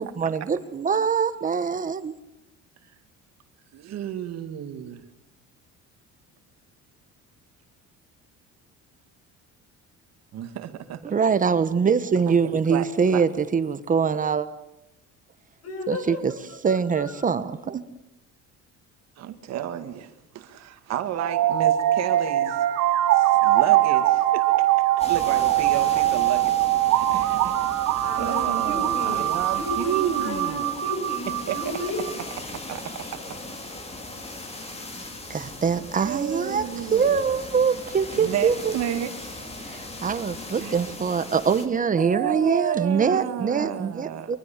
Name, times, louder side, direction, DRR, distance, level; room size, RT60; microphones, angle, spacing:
voice 1, 0.0-2.1 11.0-14.5 15.9-16.3 16.6-17.8 35.3-38.7 39.7-44.4, right 6 dB, 25° right, 12 dB, 1.1 m, -23 dB
voice 2, 3.7-5.0 10.3-11.0 12.3-12.4 12.7-12.9 13.1-13.2 19.2-22.6 23.1-24.4 25.1-26.6 26.9-27.7 28.2-30.7 31.5-31.6 32.7-33.0 34.4-34.8 36.0-37.2 38.2-39.7 40.5-40.7 42.0-44.2, right 10 dB, 60° right, 8 dB, 2.3 m, -31 dB
voice 3, 15.6-16.2 16.5-17.4 28.0-32.0 32.4-33.1, left 2 dB, 55° left, 7 dB, 6.7 m, -34 dB
sound 1, 21.2-32.1, right 14 dB, 85° right, 2.1 m, -22 dB
sound 2, 25.0-41.7, left 2 dB, 20° left, 3.2 m, -39 dB
24.5 x 24.0 x 7.4 m, 0.83 s
cardioid pair, 150°, 30 cm